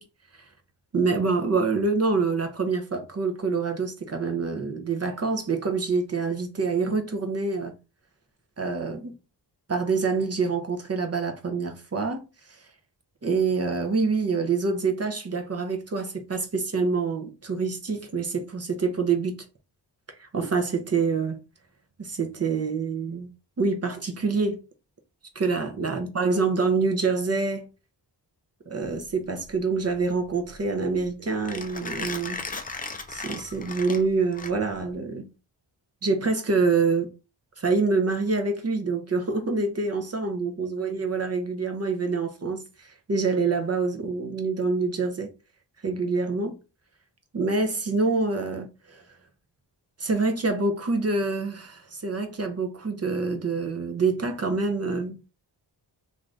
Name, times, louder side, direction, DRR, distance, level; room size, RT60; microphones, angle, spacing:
voice 1, 0.9-7.7 8.6-9.2 9.7-12.7 13.2-19.4 20.2-21.4 22.0-23.3 23.6-24.6 25.3-27.7 28.7-32.5 33.1-35.3 36.0-37.1 37.6-45.3 45.8-46.6 47.3-49.0 50.0-55.2, right 4 dB, 35° right, 0.6 m, -26 dB
Mechanisms, 28.8-34.9, left 3 dB, 20° left, 0.4 m, -37 dB
2.6 x 2.5 x 3.2 m
cardioid pair, 85°, 43 cm